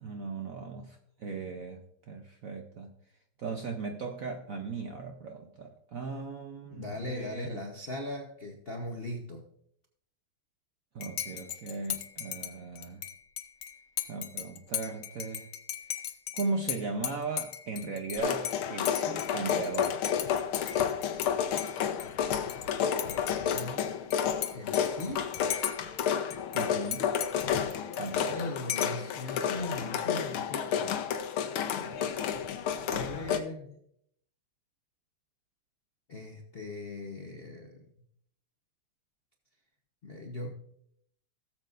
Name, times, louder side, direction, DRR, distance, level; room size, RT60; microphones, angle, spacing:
voice 1, 0.0-2.9 3.4-7.7 10.9-13.0 14.1-15.5 16.3-20.0 26.5-27.1 28.0-28.4, right 4 dB, 60° right, 3 dB, 0.9 m, -37 dB
voice 2, 6.7-9.5 23.0-23.9 24.5-25.3 28.3-30.9 31.7-32.4 32.9-33.8 36.1-37.9 40.0-40.5, left 1 dB, 50° left, 1 dB, 0.7 m, -39 dB
Dishes pots and pans / Cutlery silverware / Chink clink, 11.0-21.3 21.6-22.7 23.0-26.1 26.3-28.3 28.7-29.1, left 11 dB, 65° left, 1.2 m, -38 dB
sound 1, 18.2-33.4, left 8 dB, 80° left, 1.6 m, -31 dB
17.5 x 7.5 x 2.5 m, 0.69 s
omnidirectional pair, 2.3 m